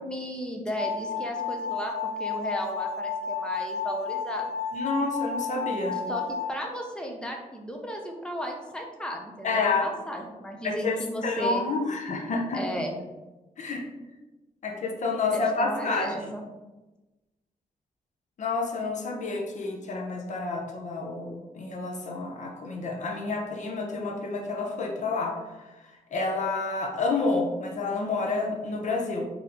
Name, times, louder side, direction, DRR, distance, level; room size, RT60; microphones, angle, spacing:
voice 1, 0.0-4.5 5.9-11.6 12.5-13.0 15.3-16.4, equal, 5° left, 1 dB, 0.6 m, -35 dB
sound 1, 0.8-6.5, left 5 dB, 50° right, 0.6 m, -32 dB
voice 2, 4.7-6.0 9.4-9.8 10.6-10.9 11.2-12.6 13.6-13.9 14.6-16.4 18.4-25.3 26.1-29.2, left 3 dB, 55° left, 1 dB, 0.7 m, -29 dB
4.2 x 2.8 x 3.8 m, 1.1 s
wide cardioid pair, 145°, 15 cm